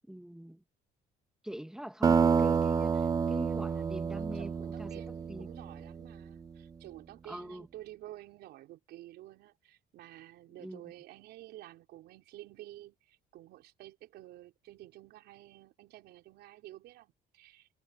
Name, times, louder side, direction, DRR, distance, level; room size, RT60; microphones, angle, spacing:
voice 1, 0.1-0.6 1.4-5.5 7.3-7.7 10.6-10.8, equal, 5° right, 2.4 m, -43 dB
sound 1, 2.0-6.3, right 6 dB, 20° right, 0.3 m, -29 dB
voice 2, 4.0-17.7, right 15 dB, 80° right, 4.9 m, -51 dB
cardioid pair, 110°, 17 cm